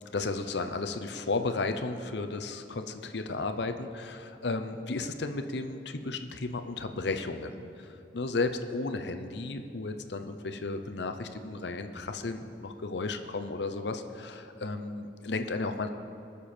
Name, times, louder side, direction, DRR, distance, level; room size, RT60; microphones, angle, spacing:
voice 1, 0.1-15.9, left 3 dB, 65° left, 8 dB, 0.7 m, -34 dB
20.0 x 6.9 x 4.4 m, 2.8 s
head